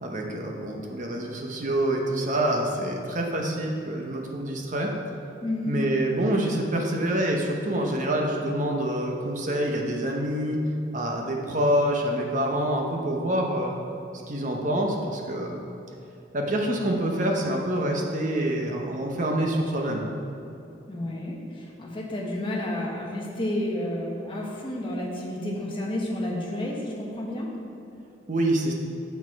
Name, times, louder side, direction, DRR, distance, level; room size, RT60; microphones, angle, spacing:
voice 1, 0.0-4.9 5.7-10.6 10.9-13.7 14.3-15.6 16.3-20.0 28.3-28.7, right 1 dB, 40° right, 1 dB, 0.9 m, -26 dB
voice 2, 5.4-5.8 20.9-27.5, left 1 dB, 25° left, -2 dB, 1.1 m, -31 dB
7.0 x 6.1 x 4.7 m, 2.9 s
head